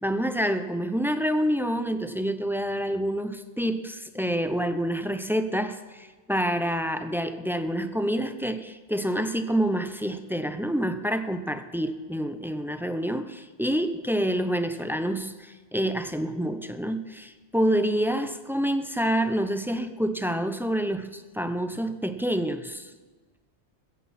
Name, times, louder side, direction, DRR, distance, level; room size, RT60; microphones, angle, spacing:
voice 1, 0.0-22.9, equal, 5° right, 9 dB, 0.4 m, -27 dB
15.5 x 15.0 x 4.3 m, 1.3 s
omnidirectional pair, 1.2 m